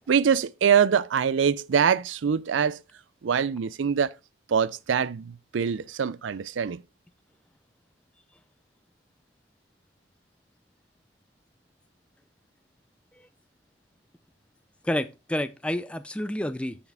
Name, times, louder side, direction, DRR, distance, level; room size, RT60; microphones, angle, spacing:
voice 1, 0.1-2.8 3.2-4.1 4.5-6.8, right 7 dB, 80° right, 0.4 m, -24 dB
voice 2, 14.8-16.8, left 1 dB, 5° left, 0.4 m, -29 dB
8.1 x 7.1 x 3.4 m
head